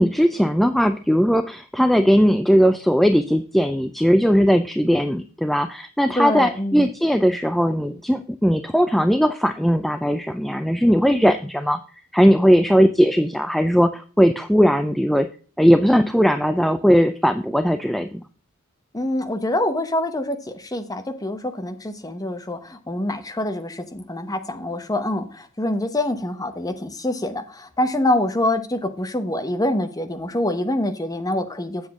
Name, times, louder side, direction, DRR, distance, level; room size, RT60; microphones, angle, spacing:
voice 1, 0.0-11.8 12.1-15.3 15.6-18.2, equal, ahead, 8 dB, 0.4 m, -18 dB
voice 2, 6.1-6.9 18.9-31.9, left 1 dB, 15° left, 7 dB, 1.0 m, -25 dB
8.0 x 7.2 x 3.7 m, 0.40 s
head